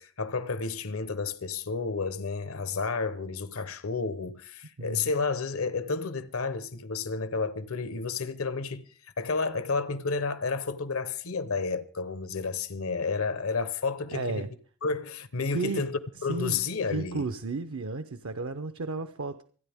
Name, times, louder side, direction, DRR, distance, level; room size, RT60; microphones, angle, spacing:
voice 1, 0.0-8.9 9.2-14.5 14.8-17.2, left 4 dB, 80° left, 1.0 m, -31 dB
voice 2, 4.8-5.1 14.1-14.5 15.5-15.9 16.3-16.6 16.9-19.4, right 3 dB, 75° right, 0.7 m, -33 dB
25.5 x 9.9 x 3.5 m
head